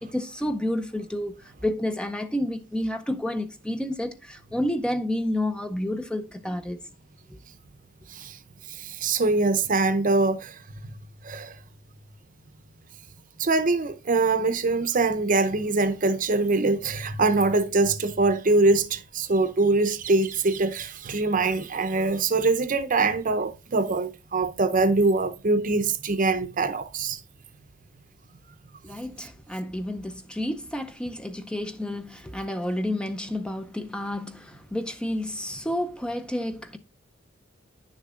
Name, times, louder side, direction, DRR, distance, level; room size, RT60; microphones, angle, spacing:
voice 1, 0.0-6.8 28.8-36.8, left 1 dB, 5° left, 0.5 m, -30 dB
voice 2, 8.7-10.6 11.2-11.6 13.4-27.2, right 3 dB, 45° right, 0.7 m, -23 dB
10.5 x 6.7 x 2.4 m
head